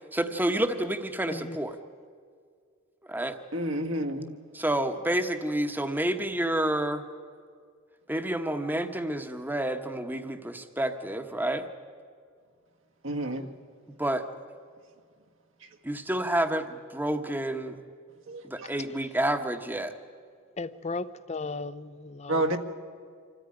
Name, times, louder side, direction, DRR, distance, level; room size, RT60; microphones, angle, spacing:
voice 1, 0.1-1.8 3.1-3.4 4.5-7.1 8.1-11.7 14.0-14.3 15.8-17.8 18.4-19.9, right 1 dB, 10° right, 8 dB, 1.1 m, -29 dB
voice 2, 3.5-4.4 13.0-13.5 18.3-18.7 22.3-22.6, right 1 dB, 70° right, 4 dB, 1.6 m, -29 dB
voice 3, 20.6-22.6, left 3 dB, 35° left, 16 dB, 0.6 m, -36 dB
26.0 x 14.0 x 9.8 m, 2.1 s
head